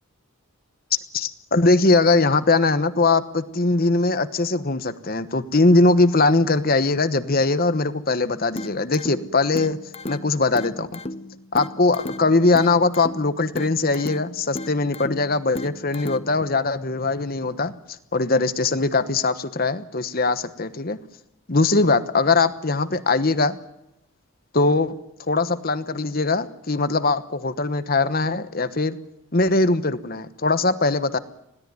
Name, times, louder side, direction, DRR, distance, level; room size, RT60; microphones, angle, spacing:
voice 1, 1.1-9.8 10.1-11.0 11.5-17.7 18.1-21.0 21.5-23.6 24.5-25.0 25.3-29.0 29.3-31.2, left 3 dB, 40° left, 12 dB, 1.1 m, -21 dB
sound 1, 8.6-16.6, left 1 dB, 25° left, 0.8 m, -36 dB
21.0 x 16.5 x 9.6 m, 0.83 s
head